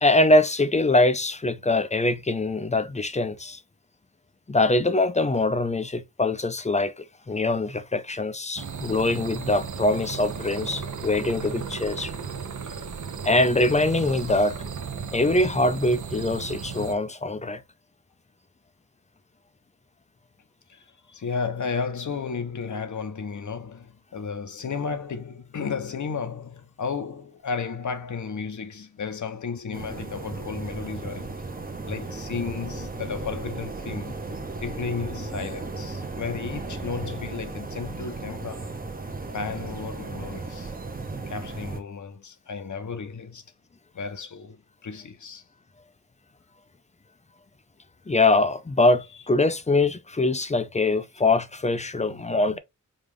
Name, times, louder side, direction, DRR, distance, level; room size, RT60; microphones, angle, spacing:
voice 1, 0.0-3.6 4.5-12.1 13.2-14.5 15.1-17.6 48.1-52.6, left 2 dB, 20° left, 0.4 m, -23 dB
sound 1, 8.6-16.9, right 6 dB, 65° right, 0.7 m, -35 dB
voice 2, 20.7-31.4 31.9-34.2 34.6-38.7 39.3-40.7 41.3-43.4 43.9-45.4 49.1-49.3 51.1-51.2 51.9-52.6, left 5 dB, 65° left, 0.7 m, -33 dB
sound 2, 29.7-41.8, right 3 dB, 25° right, 0.8 m, -35 dB
5.1 x 2.4 x 3.3 m
wide cardioid pair, 90°, 33 cm